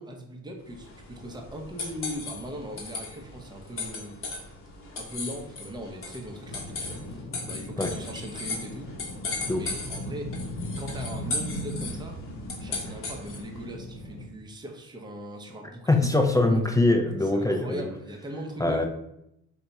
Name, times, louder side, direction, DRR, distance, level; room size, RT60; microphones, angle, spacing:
voice 1, 0.0-4.2 4.9-8.9 9.5-10.4 10.8-12.2 12.6-16.1 16.5-16.6 17.2-18.9, equal, 15° right, 1 dB, 0.6 m, -39 dB
sound 1, 0.7-13.6, left 3 dB, 45° left, 1.0 m, -37 dB
sound 2, 6.4-14.3, left 1 dB, 90° left, 0.7 m, -38 dB
voice 2, 15.9-17.9 18.6-18.9, left 2 dB, 10° left, 3 dB, 0.3 m, -23 dB
2.7 x 2.3 x 4.0 m, 0.80 s
cardioid pair, 90°, 30 cm